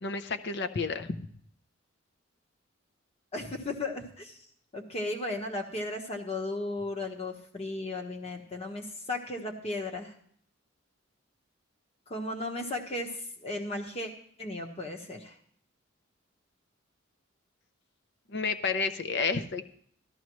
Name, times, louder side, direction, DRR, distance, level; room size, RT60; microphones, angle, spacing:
voice 1, 0.0-1.3 18.3-19.6, left 4 dB, 55° left, 9 dB, 0.7 m, -31 dB
voice 2, 3.3-4.4 4.7-10.1 12.1-14.1 14.4-15.3, left 2 dB, 30° left, 2 dB, 1.3 m, -35 dB
13.5 x 12.5 x 3.1 m, 0.63 s
head